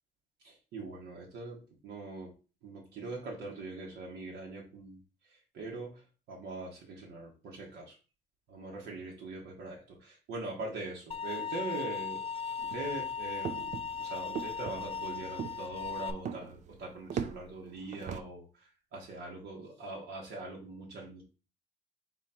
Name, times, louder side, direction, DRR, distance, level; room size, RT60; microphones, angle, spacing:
voice 1, 0.4-2.3 2.6-5.0 5.5-6.0 6.3-8.0 8.5-12.2 12.6-13.7 14.0-18.4 18.9-21.2, right 2 dB, 75° right, -2 dB, 1.3 m, -42 dB
sound 1, 11.1-16.1, left 6 dB, 35° left, 0.5 m, -37 dB
sound 2, 12.6-18.2, right 7 dB, 45° right, 0.5 m, -41 dB
3.9 x 3.1 x 4.3 m, 0.34 s
cardioid pair, 110°, 17 cm